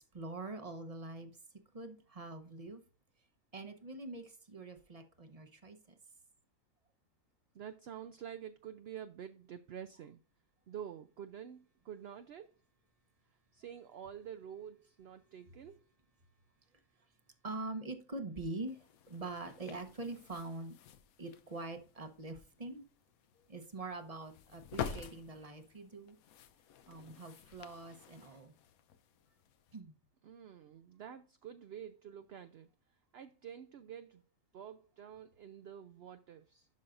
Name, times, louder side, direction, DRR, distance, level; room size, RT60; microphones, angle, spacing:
voice 1, 0.0-1.3 1.7-2.8 3.5-5.8 17.4-20.8 21.2-22.8 23.5-26.2 26.9-28.5 29.7-30.0, right 2 dB, 30° right, 0.8 m, -44 dB
voice 2, 7.5-10.2 10.7-12.5 13.5-15.8 30.2-32.7 33.1-34.2 34.5-36.7, right 9 dB, 65° right, 0.6 m, -48 dB
sound 1, 18.6-29.8, left 8 dB, 80° left, 1.1 m, -49 dB
11.5 x 5.5 x 2.5 m
omnidirectional pair, 1.5 m